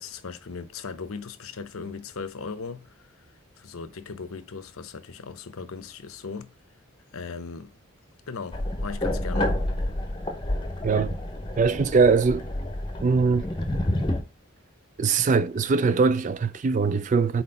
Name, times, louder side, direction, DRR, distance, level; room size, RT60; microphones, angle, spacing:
voice 1, 0.0-3.1 3.6-6.5 7.1-7.8 8.3-9.5, left 5 dB, 80° left, 0.7 m, -38 dB
sound 1, 8.5-14.2, left 1 dB, 20° left, 0.8 m, -29 dB
voice 2, 11.6-12.5 13.0-13.5 15.0-17.4, right 4 dB, 35° right, 0.3 m, -21 dB
4.3 x 4.2 x 5.4 m
head